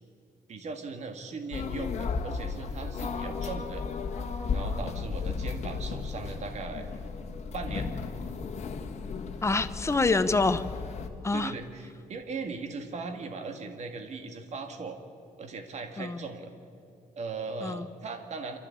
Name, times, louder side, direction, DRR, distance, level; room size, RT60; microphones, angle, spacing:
voice 1, 0.5-3.8 4.5-7.1 7.5-7.9 11.3-15.0 15.4-16.5 17.2-18.6, right 4 dB, 50° right, 5 dB, 1.9 m, -38 dB
sound 1, 1.5-11.1, left 5 dB, 45° left, 1.6 m, -34 dB
voice 2, 9.4-10.6 11.2-11.5 16.0-16.2 17.6-17.9, left 3 dB, 20° left, 11 dB, 0.8 m, -26 dB
27.5 x 13.0 x 8.5 m, 2.6 s
cardioid pair, 140°, 15 cm